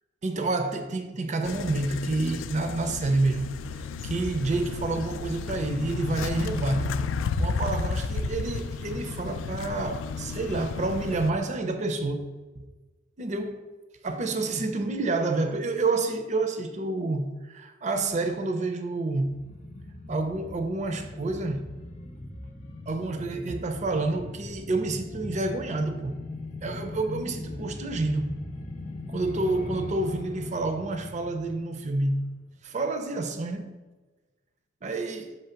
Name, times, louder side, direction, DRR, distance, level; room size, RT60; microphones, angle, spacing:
voice 1, 0.2-7.1 7.4-12.3 12.6-12.7 13.2-13.6 14.0-19.4 20.1-21.7 22.9-26.2 26.6-28.4 29.1-32.3 32.6-33.7 34.8-35.4, right 2 dB, 40° right, 0.5 m, -29 dB
sound 1, 1.4-11.3, left 4 dB, 90° left, 0.3 m, -32 dB
sound 2, 19.2-32.4 32.7-32.8, left 2 dB, 35° left, 0.8 m, -40 dB
5.8 x 3.1 x 5.6 m
head